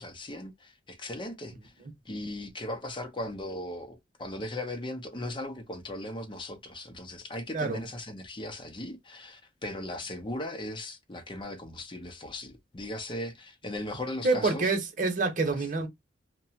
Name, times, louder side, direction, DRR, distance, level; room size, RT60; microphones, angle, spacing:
voice 1, 0.0-1.7 2.0-14.7, left 1 dB, 25° left, 0.7 m, -38 dB
voice 2, 7.5-7.8 14.2-15.9, right 3 dB, 45° right, 0.9 m, -27 dB
2.9 x 2.2 x 2.7 m
head